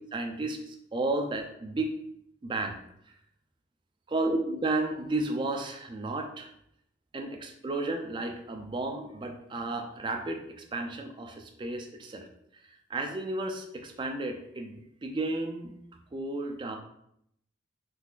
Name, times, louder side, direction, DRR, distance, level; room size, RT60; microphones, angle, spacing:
voice 1, 0.1-2.0 2.4-2.8 4.1-6.5 7.1-12.3 12.9-15.8 16.1-16.8, right 2 dB, 25° right, 4 dB, 0.3 m, -33 dB
3.6 x 3.3 x 2.4 m, 0.75 s
head